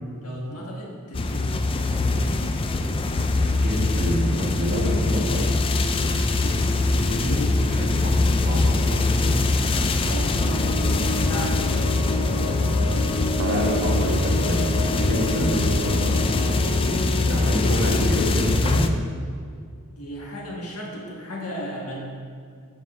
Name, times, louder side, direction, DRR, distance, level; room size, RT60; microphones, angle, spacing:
voice 1, 0.2-1.7 6.2-7.7 10.0-10.4 11.1-12.0 20.0-22.0, equal, 80° left, -2 dB, 1.8 m, -35 dB
sound 1, 1.1-18.9, left 2 dB, 25° left, 0.4 m, -23 dB
voice 2, 3.3-5.5 7.1-7.3 7.7-9.4 13.0-16.2 16.6-18.8, equal, 40° right, -2 dB, 1.6 m, -28 dB
sound 2, 10.4-18.2, left 1 dB, 55° left, 1.4 m, -30 dB
Acoustic guitar, 13.4-16.6, right 6 dB, 85° right, 0.4 m, -37 dB
8.7 x 6.0 x 4.5 m, 2.2 s
head